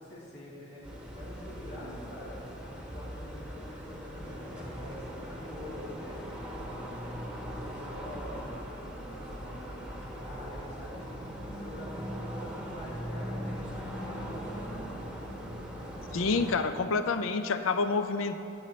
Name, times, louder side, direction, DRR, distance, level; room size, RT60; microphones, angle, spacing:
voice 1, 0.0-7.1 7.4-14.8, left 1 dB, 55° left, -9 dB, 2.5 m, -46 dB
sound 1, 0.8-16.6, equal, 5° right, 1.0 m, -40 dB
voice 2, 16.1-18.4, left 4 dB, 90° left, 10 dB, 0.5 m, -28 dB
13.0 x 8.8 x 3.2 m, 2.9 s
head